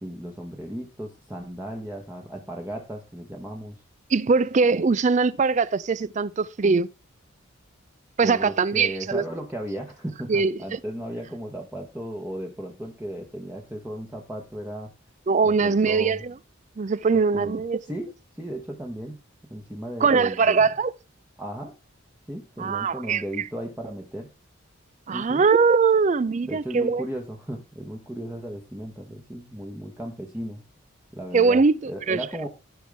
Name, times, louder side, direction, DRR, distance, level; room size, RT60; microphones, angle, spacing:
voice 1, 0.0-3.8 8.2-14.9 15.4-16.2 17.3-17.5 17.8-19.2 19.5-20.7 21.4-21.7 22.3-24.3 25.1-25.4 26.4-30.6 31.1-31.6 31.9-32.5, right 1 dB, 10° right, 1.1 m, -35 dB
voice 2, 4.1-6.9 8.2-9.2 10.3-10.8 15.3-16.3 16.8-17.8 20.0-20.9 22.6-23.2 25.1-27.0 31.3-32.2, right 4 dB, 35° right, 0.4 m, -21 dB
15.5 x 5.3 x 3.5 m
head